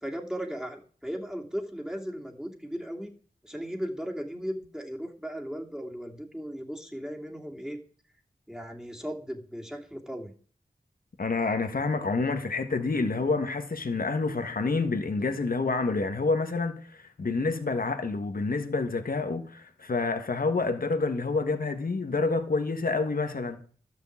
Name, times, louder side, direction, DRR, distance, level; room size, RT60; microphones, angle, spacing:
voice 1, 0.0-3.1 3.4-7.8 8.5-10.3, equal, 5° right, 2.5 m, -36 dB
voice 2, 11.2-23.6, left 3 dB, 75° left, 1.5 m, -28 dB
12.5 x 6.4 x 8.5 m
cardioid pair, 45°, 15 cm